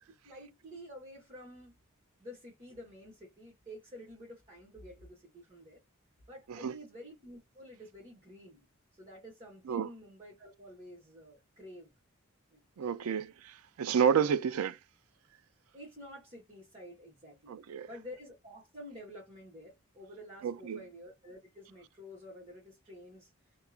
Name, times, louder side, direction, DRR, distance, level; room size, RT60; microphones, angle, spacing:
voice 1, 0.2-1.8 2.2-5.8 6.3-8.6 8.9-11.9 12.5-13.1 14.2-14.4 15.7-17.6 17.9-23.3, equal, 25° right, 1.4 m, -50 dB
voice 2, 12.8-14.8 17.5-17.9 20.4-20.8, right 7 dB, 75° right, 0.4 m, -30 dB
2.8 x 2.4 x 2.4 m
head